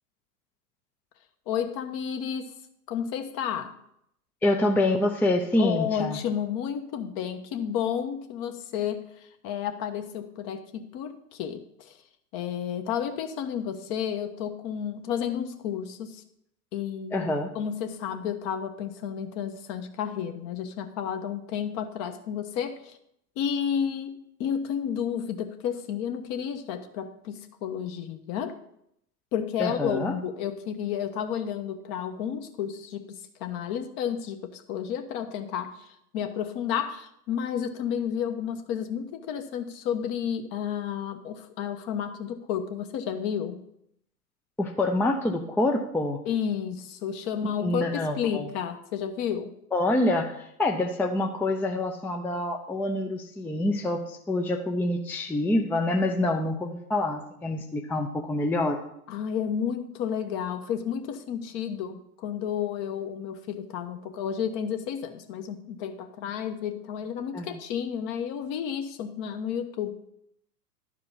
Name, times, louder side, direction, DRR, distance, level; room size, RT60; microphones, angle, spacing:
voice 1, 1.5-2.5 2.9-3.7 5.6-9.1 9.4-11.9 12.3-16.2 16.7-17.3 17.5-23.0 23.4-28.5 29.3-35.9 36.1-43.6 46.3-47.9 48.1-49.5 59.1-69.9, left 8 dB, 45° left, 7 dB, 1.1 m, -31 dB
voice 2, 4.4-6.2 17.1-17.5 29.6-30.2 44.6-46.2 47.6-48.5 49.7-58.8 67.3-67.6, left 1 dB, 5° left, 3 dB, 0.5 m, -26 dB
11.5 x 4.9 x 5.5 m, 0.75 s
hypercardioid pair, 95°, 47 cm